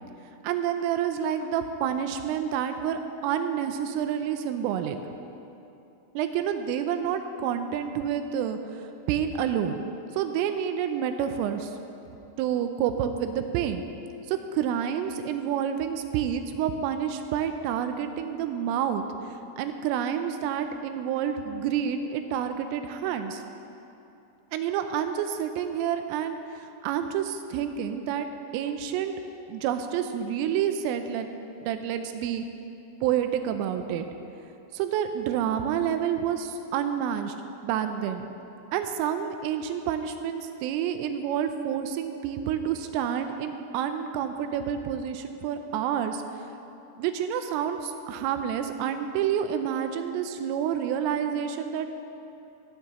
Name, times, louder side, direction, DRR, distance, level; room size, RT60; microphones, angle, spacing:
voice 1, 0.4-5.0 6.2-9.8 10.1-11.7 12.4-13.8 14.3-23.4 24.5-28.3 28.5-29.1 29.5-31.3 31.6-32.4 33.0-34.1 34.7-37.4 37.6-38.3 38.7-46.5 47.0-51.9, right 9 dB, 85° right, 8 dB, 3.1 m, -29 dB
16.0 x 14.0 x 3.0 m, 2.9 s
omnidirectional pair, 6.0 m